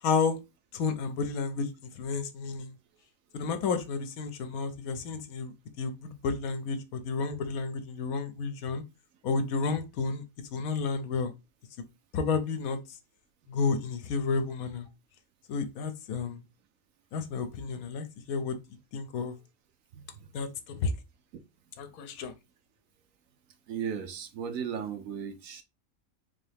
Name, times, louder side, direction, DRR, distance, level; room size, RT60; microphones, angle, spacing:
voice 1, 0.0-0.4 0.7-1.7 2.0-2.7 3.3-8.8 9.2-10.2 10.5-11.3 12.1-13.0 13.5-14.9 15.5-16.4 17.1-18.6 18.9-19.4 20.3-20.9 21.8-22.3, left 4 dB, 75° left, 1.1 m, -31 dB
voice 2, 23.7-25.6, right 7 dB, 70° right, 1.0 m, -35 dB
3.7 x 2.8 x 3.3 m
omnidirectional pair, 1.5 m